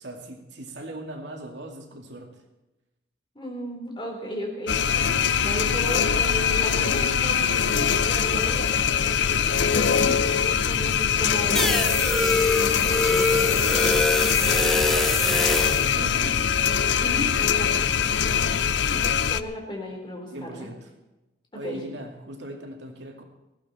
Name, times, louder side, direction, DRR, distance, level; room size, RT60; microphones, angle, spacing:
voice 1, 0.0-2.4 14.9-17.0 17.7-18.3 20.3-20.9 21.6-23.2, right 1 dB, 75° right, 3 dB, 2.4 m, -39 dB
voice 2, 3.3-14.9 15.9-16.2 17.0-18.4 18.9-20.7 21.6-21.8, equal, 25° left, 1 dB, 3.8 m, -36 dB
sound 1, 4.7-19.4, left 7 dB, 80° left, 0.6 m, -23 dB
Bowed string instrument, 4.7-8.4, equal, 45° right, 4.6 m, -37 dB
sound 2, 11.6-15.9, left 2 dB, ahead, 0.7 m, -24 dB
18.5 x 15.5 x 4.3 m, 1.0 s
head